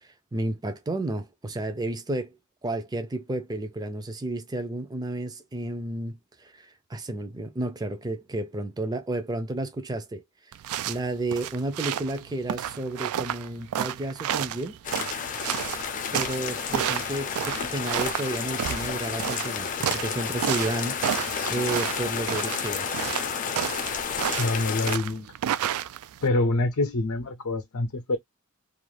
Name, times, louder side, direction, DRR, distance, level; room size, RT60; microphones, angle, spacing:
voice 1, 0.0-2.3 2.6-10.2 10.9-14.8 16.1-22.9, right 2 dB, 20° right, 0.4 m, -32 dB
sound 1, 10.5-26.3, right 10 dB, 90° right, 0.3 m, -31 dB
sound 2, 14.8-25.0, left 6 dB, 35° left, 0.4 m, -31 dB
voice 2, 24.4-25.3 26.2-28.2, left 2 dB, 85° left, 0.6 m, -26 dB
2.5 x 2.3 x 3.1 m
head